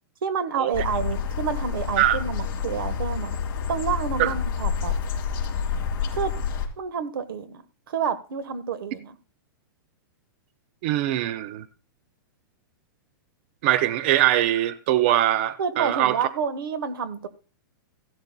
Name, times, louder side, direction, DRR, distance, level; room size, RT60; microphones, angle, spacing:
voice 1, 0.2-3.4 3.7-4.9 6.1-6.3 6.8-9.1 15.6-17.3, right 6 dB, 75° right, 1.3 m, -29 dB
sound 1, 0.7-6.7, left 6 dB, 25° left, 2.2 m, -28 dB
voice 2, 10.8-11.7 13.6-16.2, right 13 dB, 30° right, 0.4 m, -22 dB
15.5 x 11.5 x 2.2 m
supercardioid pair, 170°, 12 cm